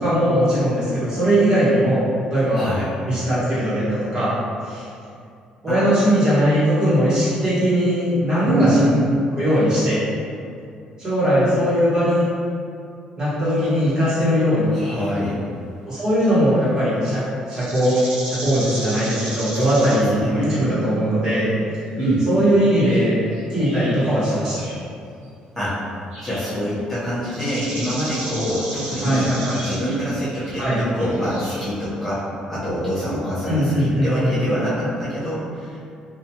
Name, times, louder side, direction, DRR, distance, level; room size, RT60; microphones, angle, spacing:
voice 1, 0.0-2.0 2.3-2.7 3.1-4.3 4.6-4.9 5.6-8.8 9.3-10.0 11.0-12.3 13.2-14.8 15.8-21.5 22.3-23.2 23.5-24.7 29.0-29.6 30.5-30.8 33.4-34.4, equal, 30° right, -11 dB, 1.3 m, -19 dB
voice 2, 2.5-2.9 5.7-6.3 8.4-9.1 14.7-15.4 19.8-20.7 22.0-22.2 25.6-25.8 26.2-29.3 29.6-35.8, equal, 10° left, -13 dB, 0.8 m, -25 dB
sound 1, 13.4-13.7 15.0-15.3 16.2-16.3 16.8-16.9 17.5-20.1 20.4-20.5 21.3-21.4 22.0-22.2 22.6-24.2 24.4-24.9 25.2-25.3 26.1-26.5 27.3-31.7, right 1 dB, 70° right, 0.9 m, -34 dB
2.4 x 2.3 x 2.8 m, 2.4 s
cardioid pair, 110°, 2 cm